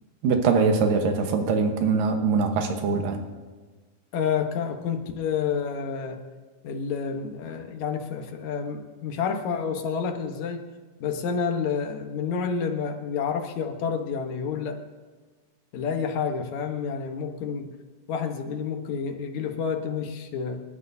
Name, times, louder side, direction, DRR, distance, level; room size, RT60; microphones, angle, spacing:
voice 1, 0.2-3.2, right 4 dB, 90° right, 5 dB, 3.0 m, -23 dB
voice 2, 4.1-6.2 6.6-10.6 11.0-14.8 15.7-17.7 18.1-20.6, left 6 dB, 65° left, 4 dB, 2.4 m, -29 dB
28.0 x 12.5 x 2.8 m, 1.4 s
omnidirectional pair, 3.8 m